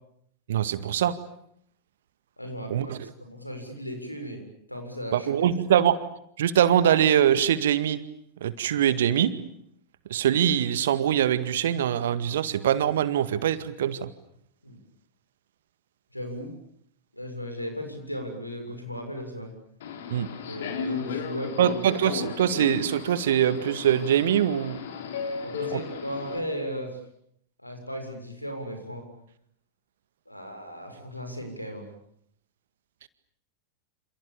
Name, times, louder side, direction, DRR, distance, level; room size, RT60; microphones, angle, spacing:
voice 1, 0.5-1.2 2.7-3.0 5.1-6.0 6.4-8.0 8.4-9.3 10.1-14.1 20.1-20.3 21.6-24.8 25.7-25.8, right 10 dB, 60° right, 13 dB, 1.9 m, -23 dB
voice 2, 2.4-2.9 3.2-4.4 4.7-5.3 14.6-14.8 16.1-16.5 17.1-19.5 20.5-21.8 25.4-27.0 27.6-29.0 30.3-31.9, equal, 85° left, 6 dB, 6.9 m, -36 dB
Subway metro underground, 19.8-26.4, left 6 dB, 60° left, 3.6 m, -35 dB
28.5 x 28.0 x 7.2 m, 0.71 s
figure-of-eight pair, 90°, 0 cm